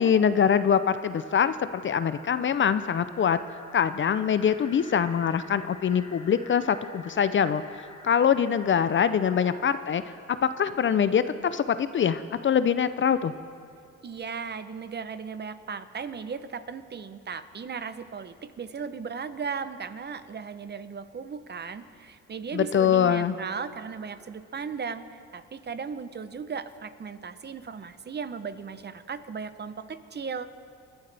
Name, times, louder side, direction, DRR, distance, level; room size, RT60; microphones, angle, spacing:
voice 1, 0.0-3.4 3.7-10.0 10.3-13.3 22.5-23.3, left 8 dB, 40° left, 13 dB, 0.5 m, -24 dB
sound 1, 0.9-9.6, left 2 dB, 15° left, 1.2 m, -49 dB
voice 2, 14.0-30.5, right 5 dB, 35° right, 12 dB, 0.8 m, -36 dB
29.5 x 11.5 x 3.4 m, 2.5 s
cardioid pair, 90°, 30 cm